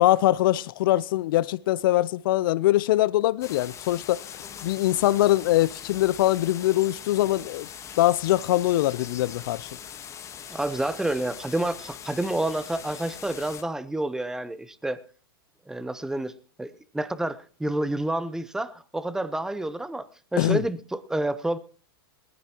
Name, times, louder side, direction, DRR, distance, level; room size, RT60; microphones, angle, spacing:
voice 1, 0.0-4.3 4.6-7.7 8.0-9.7 20.4-20.6, left 15 dB, 60° left, 0.6 m, -22 dB
sound 1, 3.4-13.6, left 8 dB, 25° left, 1.3 m, -41 dB
voice 2, 10.5-15.0 15.7-16.3 16.6-21.6, right 1 dB, 5° right, 0.8 m, -29 dB
20.0 x 14.5 x 3.0 m
hypercardioid pair, 125°, 13 cm